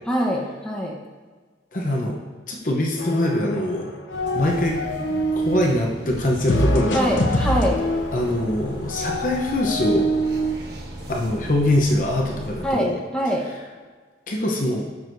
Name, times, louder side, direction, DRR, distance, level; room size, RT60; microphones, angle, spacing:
voice 1, 0.1-1.0 6.9-7.8 12.6-13.5, equal, 5° left, -2 dB, 1.0 m, -23 dB
voice 2, 1.7-2.2 2.5-4.0 4.3-4.8 5.3-7.6 8.1-10.1 11.1-13.0 14.3-14.8, left 1 dB, 45° left, 0 dB, 0.8 m, -23 dB
sound 1, 3.0-3.7 4.0-5.6 6.5-10.5, equal, 85° left, 0.8 m, -25 dB
sound 2, 4.1-12.7, right 1 dB, 60° right, 1.3 m, -37 dB
12.0 x 6.2 x 2.7 m, 1.5 s
head